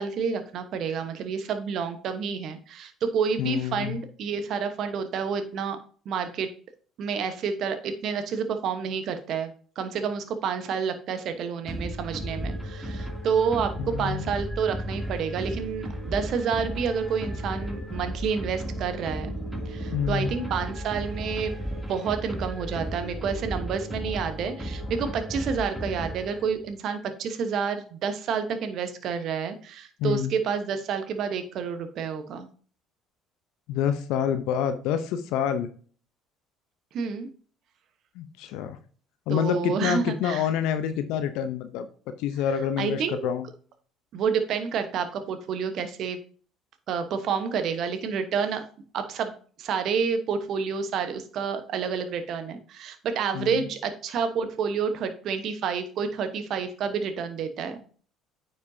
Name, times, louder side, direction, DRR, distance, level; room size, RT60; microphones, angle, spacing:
voice 1, 0.0-5.8 6.0-6.5 7.0-9.5 9.8-19.4 19.6-21.5 21.9-32.5 36.9-37.3 39.3-40.5 42.8-43.3 44.1-46.2 46.9-48.6 48.9-57.8, right 6 dB, 60° right, 8 dB, 1.1 m, -29 dB
voice 2, 3.4-4.0 13.8-14.3 19.9-20.3 30.0-30.3 33.7-35.7 38.2-38.8 39.3-41.9 42.2-43.4 53.3-53.6, left 8 dB, 75° left, 10 dB, 0.7 m, -27 dB
sound 1, 11.7-26.7, equal, 10° right, 2.7 m, -34 dB
9.3 x 5.4 x 2.8 m, 0.42 s
hypercardioid pair, 60°, 0 cm